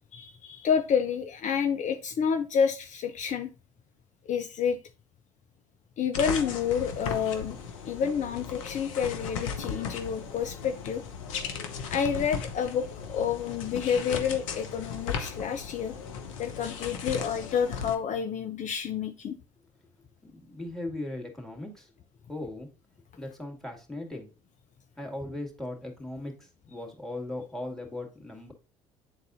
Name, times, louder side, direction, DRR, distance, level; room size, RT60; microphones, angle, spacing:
voice 1, 0.1-3.5 4.3-4.8 6.0-7.6 7.8-11.0 11.9-16.0 16.4-19.4, left 7 dB, 50° left, 7 dB, 0.7 m, -29 dB
sound 1, 6.1-17.9, left 6 dB, 85° left, 0.8 m, -36 dB
voice 2, 20.2-21.9 22.3-22.7 23.2-24.3 25.0-28.5, left 1 dB, ahead, 3 dB, 2.5 m, -38 dB
9.6 x 4.0 x 2.6 m, 0.32 s
hypercardioid pair, 60°, 16 cm